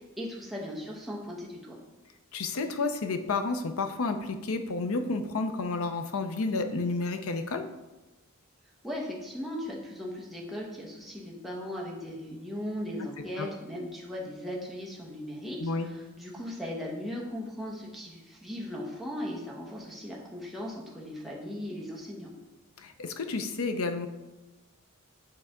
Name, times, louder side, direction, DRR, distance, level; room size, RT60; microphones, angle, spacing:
voice 1, 0.0-1.8 8.8-22.3, left 1 dB, ahead, -4 dB, 1.1 m, -38 dB
voice 2, 2.3-7.7 13.4-13.5 15.6-15.9 22.8-24.1, left 3 dB, 65° left, 7 dB, 0.5 m, -31 dB
8.7 x 3.3 x 3.7 m, 1.1 s
head